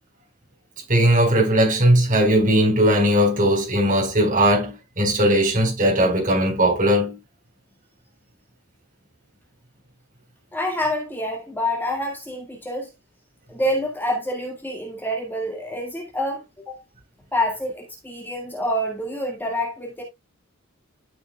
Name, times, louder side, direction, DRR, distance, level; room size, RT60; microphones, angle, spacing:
voice 1, 0.9-7.2, equal, 40° right, 4.5 m, -18 dB
voice 2, 10.5-12.9 13.5-16.8 17.3-20.0, left 1 dB, 10° left, 1.8 m, -27 dB
13.0 x 6.1 x 2.3 m
head